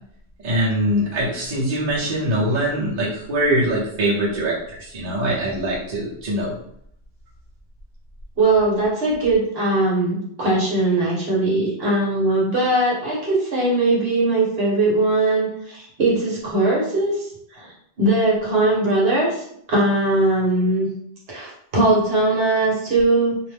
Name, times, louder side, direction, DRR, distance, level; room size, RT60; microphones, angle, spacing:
voice 1, 0.4-6.5, right 1 dB, 45° right, -6 dB, 0.8 m, -23 dB
voice 2, 8.4-17.2 17.5-20.9 21.3-23.5, right 2 dB, 60° right, -4 dB, 1.1 m, -20 dB
2.5 x 2.1 x 3.2 m, 0.70 s
omnidirectional pair, 1.2 m